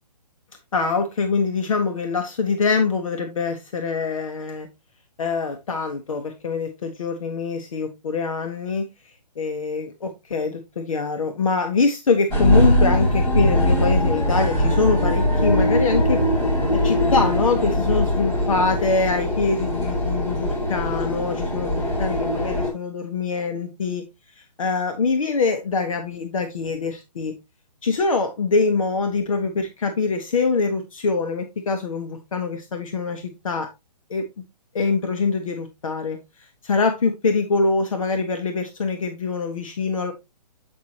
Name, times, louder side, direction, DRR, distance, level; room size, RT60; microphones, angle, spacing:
voice 1, 0.7-4.7 5.2-8.9 9.4-16.2 16.7-24.0 24.4-27.3 27.8-33.7 34.1-34.4 34.7-36.2 36.6-40.1, left 4 dB, 50° left, 1.2 m, -24 dB
sound 1, 12.3-22.7, left 1 dB, 20° left, 4.1 m, -21 dB
8.3 x 5.3 x 2.9 m
hypercardioid pair, 175°, 21 cm